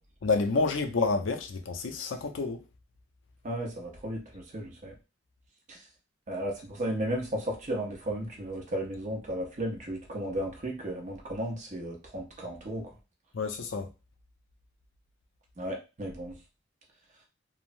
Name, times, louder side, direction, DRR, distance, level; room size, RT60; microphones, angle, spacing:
voice 1, 0.2-2.6 13.3-13.9, left 3 dB, 90° left, 0.5 m, -29 dB
voice 2, 3.4-4.9 5.7-5.8 6.3-12.9 15.6-16.4, right 1 dB, 40° right, 0.7 m, -34 dB
3.3 x 2.0 x 2.5 m
head